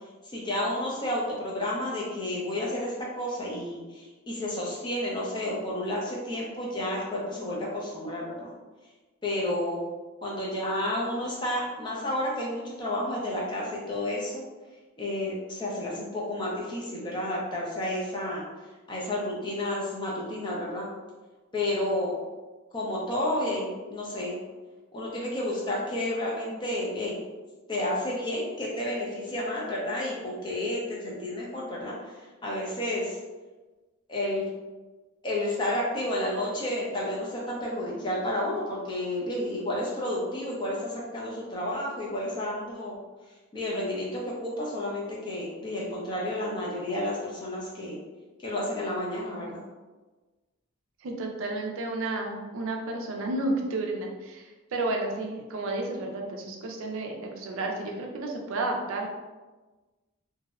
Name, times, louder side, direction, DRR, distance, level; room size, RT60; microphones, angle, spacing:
voice 1, 0.3-8.5 9.2-9.8 10.2-14.4 15.0-18.4 18.9-20.9 21.5-22.1 22.7-24.3 24.9-27.2 27.7-32.0 32.4-33.2 34.1-34.4 35.2-42.9 43.5-48.0 48.4-49.6, left 1 dB, 20° left, -4 dB, 0.4 m, -31 dB
voice 2, 51.0-59.2, right 2 dB, 75° right, 1 dB, 0.4 m, -32 dB
2.6 x 2.0 x 2.3 m, 1.2 s
head